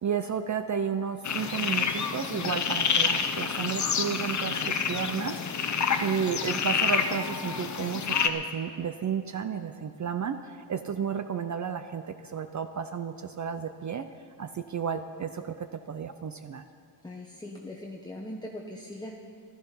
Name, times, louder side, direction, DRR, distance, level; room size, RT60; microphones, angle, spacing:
voice 1, 0.0-14.1 14.4-16.6, right 7 dB, 40° right, 9 dB, 0.5 m, -32 dB
sound 1, 1.2-8.3, left 6 dB, 35° left, 0.8 m, -28 dB
voice 2, 17.0-19.2, left 1 dB, 10° left, 0 dB, 0.9 m, -40 dB
15.0 x 13.0 x 5.7 m, 2.3 s
wide cardioid pair, 150°, 50 cm